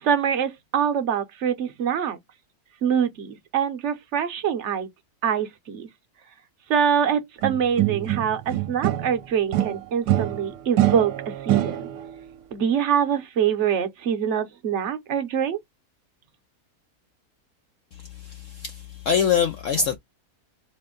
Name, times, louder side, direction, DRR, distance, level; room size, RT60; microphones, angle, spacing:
voice 1, 0.0-2.2 2.8-4.9 5.2-5.9 6.7-11.9 12.5-15.6, right 8 dB, 55° right, 0.9 m, -24 dB
sound 1, 7.4-9.2 9.5-12.1, right 13 dB, 80° right, 1.2 m, -24 dB
voice 2, 18.0-20.0, left 7 dB, 65° left, 0.8 m, -24 dB
4.2 x 2.6 x 3.7 m
omnidirectional pair, 1.7 m